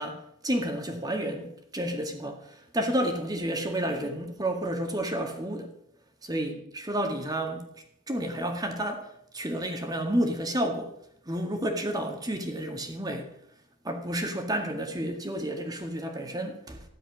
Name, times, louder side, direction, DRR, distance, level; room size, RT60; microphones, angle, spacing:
voice 1, 0.0-5.7 6.2-7.7 8.1-10.9 11.3-13.3 13.8-16.8, right 1 dB, 20° right, 1.9 m, -31 dB
14.0 x 11.0 x 6.2 m
head